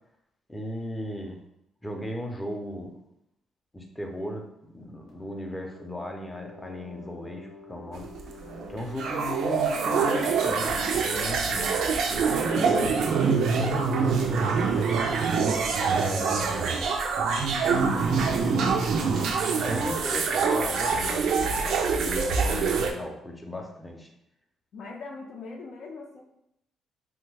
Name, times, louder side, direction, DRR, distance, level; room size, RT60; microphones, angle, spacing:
voice 1, 0.5-1.4 1.8-3.0 3.7-8.1 8.7-11.7 12.4-15.0 15.7-16.9 17.6-19.0 19.6-24.1, equal, 10° left, 2 dB, 0.5 m, -36 dB
sound 1, 5.1-16.5, left 3 dB, 90° left, 1.0 m, -48 dB
sound 2, 7.9-22.9, right 5 dB, 75° right, 0.3 m, -25 dB
voice 2, 9.9-10.5 14.7-15.3 24.7-26.2, left 3 dB, 70° left, 0 dB, 0.5 m, -42 dB
3.0 x 2.2 x 3.3 m, 0.79 s
cardioid pair, 90°, 0 cm